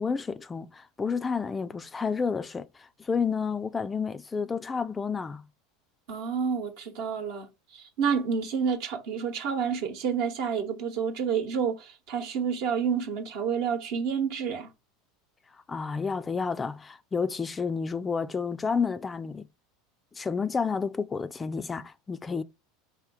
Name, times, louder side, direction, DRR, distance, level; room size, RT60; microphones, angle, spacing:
voice 1, 0.0-5.4 15.7-19.5 20.2-22.4, left 5 dB, 20° left, 0.3 m, -30 dB
voice 2, 6.1-7.5 7.7-14.7, right 6 dB, 70° right, 0.9 m, -29 dB
3.6 x 2.7 x 4.6 m
hypercardioid pair, 90°, 0 cm